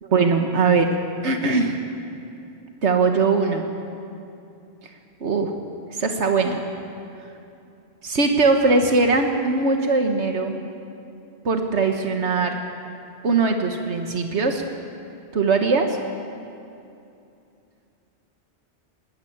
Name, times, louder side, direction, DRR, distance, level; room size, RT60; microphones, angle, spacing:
voice 1, 0.0-0.9 1.2-1.8 2.8-3.7 5.2-5.5 5.9-6.6 8.0-10.6 11.4-12.6 13.2-14.6 15.3-16.0, right 4 dB, 85° right, 4 dB, 1.7 m, -20 dB
20.5 x 19.0 x 8.8 m, 2.7 s
omnidirectional pair, 1.1 m